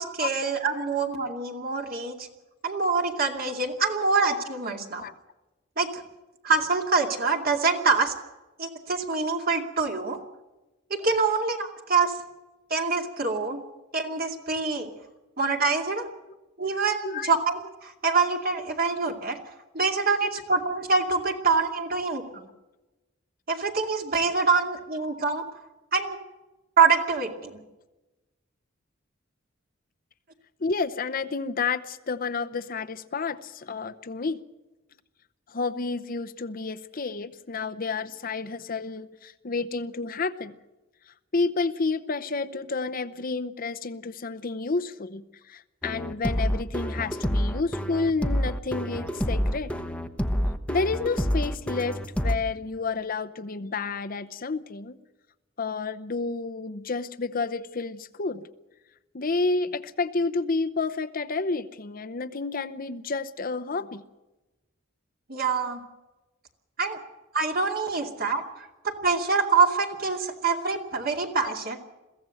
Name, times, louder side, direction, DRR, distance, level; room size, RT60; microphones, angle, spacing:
voice 1, 0.0-2.3 2.6-5.0 5.8-6.0 6.4-8.1 8.6-10.2 10.9-12.2 12.7-13.6 13.9-14.9 15.4-16.1 16.6-19.4 19.7-22.5 23.5-25.4 25.9-26.2 26.8-27.6 65.3-65.8 66.8-67.0 67.3-71.8, right 4 dB, 50° right, 3 dB, 2.5 m, -25 dB
voice 2, 30.6-34.4 35.5-40.6 41.3-49.8 50.7-55.0 55.6-58.4 59.1-64.0 71.4-71.5, left 4 dB, 45° left, 9 dB, 0.8 m, -30 dB
sound 1, 45.8-52.4, equal, 5° left, 1.0 m, -27 dB
22.5 x 15.5 x 7.8 m, 1.1 s
head